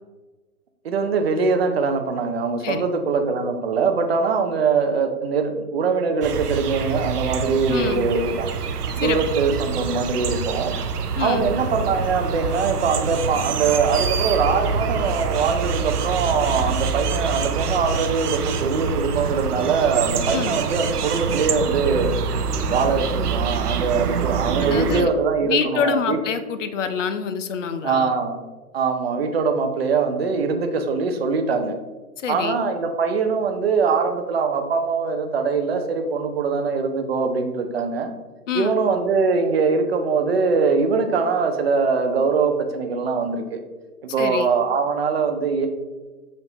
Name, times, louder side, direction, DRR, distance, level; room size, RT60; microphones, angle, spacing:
voice 1, 0.8-8.5 9.0-10.8 11.2-22.1 22.7-26.2 27.8-28.4 28.7-31.8 32.3-38.1 38.5-43.6 44.0-45.7, right 5 dB, 45° right, 5 dB, 0.6 m, -22 dB
sound 1, 6.2-25.0, right 6 dB, 85° right, 0.6 m, -26 dB
voice 2, 7.7-8.1 9.0-9.2 11.2-11.5 20.3-20.6 24.6-25.1 25.4-28.1 32.2-32.6 38.5-38.8 44.2-44.5, left 6 dB, 55° left, 9 dB, 0.5 m, -26 dB
7.0 x 2.7 x 2.7 m, 1.2 s
figure-of-eight pair, 140°, 45 cm